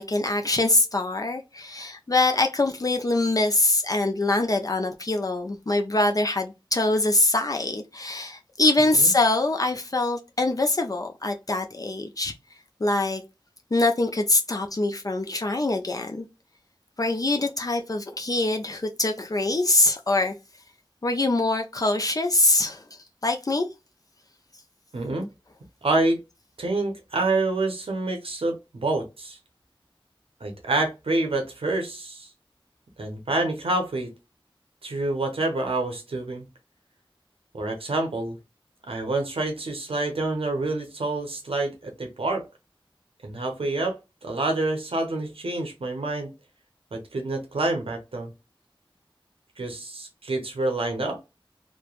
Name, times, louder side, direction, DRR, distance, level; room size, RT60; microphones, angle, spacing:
voice 1, 0.0-12.3 12.8-13.2 13.7-16.3 17.0-20.3 21.0-22.8 23.2-23.7, left 2 dB, 40° left, 0.4 m, -24 dB
voice 2, 24.9-25.3 25.8-26.2 26.6-29.4 30.4-32.3 33.0-34.1 34.8-36.4 37.5-38.4 38.9-42.4 43.2-44.0 44.2-46.3 46.9-48.3 49.6-51.2, right 2 dB, 90° right, 0.7 m, -27 dB
3.0 x 2.1 x 2.4 m
wide cardioid pair, 45°, 9 cm